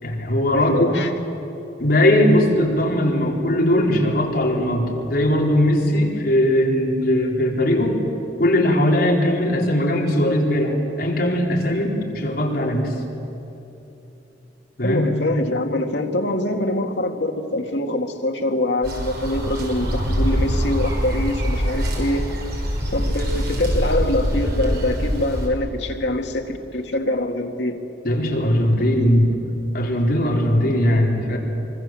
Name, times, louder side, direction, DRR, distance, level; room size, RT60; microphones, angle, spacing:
voice 1, 0.0-1.0 1.8-8.0 8.4-12.9 14.8-15.1 28.0-29.4 29.7-31.4, left 1 dB, 60° left, -1 dB, 4.1 m, -19 dB
voice 2, 0.5-1.1 14.8-22.2 22.9-27.8, left 1 dB, 75° left, 3 dB, 2.1 m, -24 dB
sound 1, 18.8-25.5, equal, 60° right, 5.8 m, -24 dB
24.5 x 24.5 x 7.7 m, 3.0 s
head